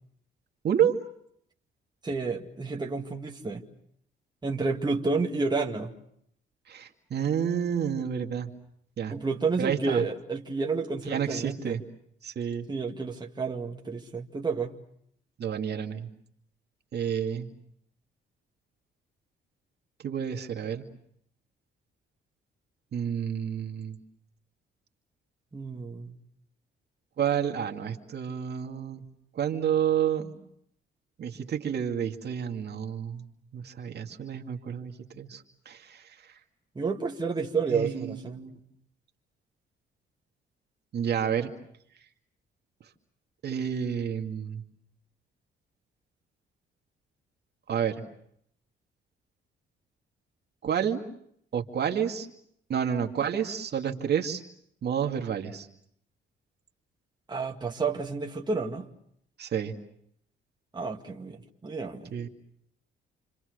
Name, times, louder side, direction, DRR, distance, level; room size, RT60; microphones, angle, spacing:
voice 1, 0.6-1.0 6.7-8.5 9.0-9.1 9.6-10.0 11.1-11.8 12.2-12.7 15.4-16.1 16.9-17.5 20.0-20.9 22.9-24.0 27.2-29.0 29.3-30.4 31.2-33.3 33.5-36.0 37.7-38.6 40.9-41.5 43.4-44.6 47.7-48.0 50.6-51.0 51.5-52.3 52.7-54.4 54.8-55.7 59.4-59.7 62.1-62.3, right 8 dB, 55° right, 3 dB, 2.4 m, -30 dB
voice 2, 2.0-3.6 4.4-5.9 9.1-11.8 12.7-14.7 25.5-26.1 36.8-38.5 57.3-58.9 60.7-62.1, right 4 dB, 20° right, 1 dB, 2.1 m, -30 dB
29.0 x 25.5 x 6.6 m, 0.71 s
cardioid pair, 90°, 20 cm